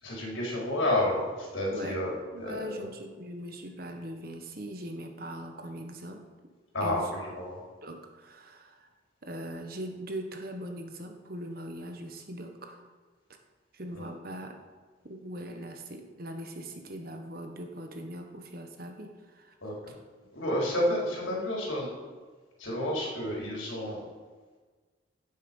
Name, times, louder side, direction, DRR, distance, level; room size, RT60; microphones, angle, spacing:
voice 1, 0.0-2.7 6.7-7.6 13.9-14.1 19.6-19.7 20.3-21.9 22.6-24.0, left 1 dB, 80° left, -4 dB, 4.6 m, -30 dB
voice 2, 2.3-6.3 6.8-7.0 7.8-8.9 9.2-12.8 13.7-14.6 15.0-19.5, equal, 50° right, 4 dB, 1.3 m, -40 dB
16.5 x 7.3 x 5.5 m, 1.4 s
head